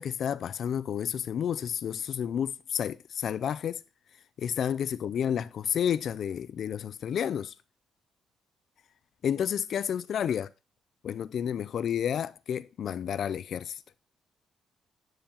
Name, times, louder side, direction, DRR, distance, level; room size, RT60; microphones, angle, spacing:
voice 1, 0.0-3.8 4.4-7.5 9.2-10.5 11.0-13.8, left 8 dB, 60° left, 0.3 m, -30 dB
7.8 x 6.7 x 2.8 m
cardioid pair, 90°, 0 cm